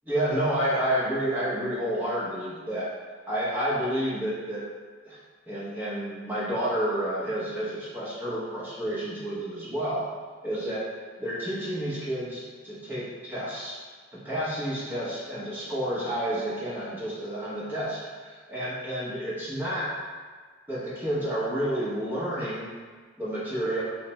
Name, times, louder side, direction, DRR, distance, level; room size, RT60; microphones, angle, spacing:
voice 1, 0.0-2.9 3.3-4.6 5.0-5.2 5.5-10.0 10.4-10.8 11.2-13.8 14.1-19.9 20.7-22.7 23.2-23.8, right 1 dB, 10° right, -9 dB, 0.9 m, -30 dB
3.3 x 2.0 x 4.2 m, 1.5 s
head